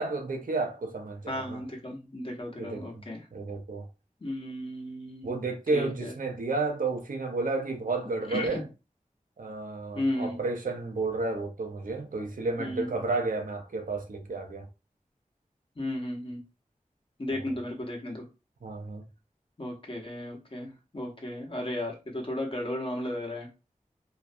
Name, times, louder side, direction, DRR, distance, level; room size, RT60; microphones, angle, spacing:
voice 1, 0.0-1.6 2.6-3.0 3.3-3.9 5.2-8.6 9.4-14.7 18.6-19.0, right 3 dB, 80° right, 0.5 m, -31 dB
voice 2, 1.3-3.2 4.2-5.4 5.7-6.1 8.3-8.6 9.9-10.4 12.6-12.9 15.8-16.4 17.2-18.3 19.6-23.5, left 1 dB, 40° left, 0.9 m, -34 dB
2.5 x 2.2 x 2.5 m
wide cardioid pair, 50°, 14 cm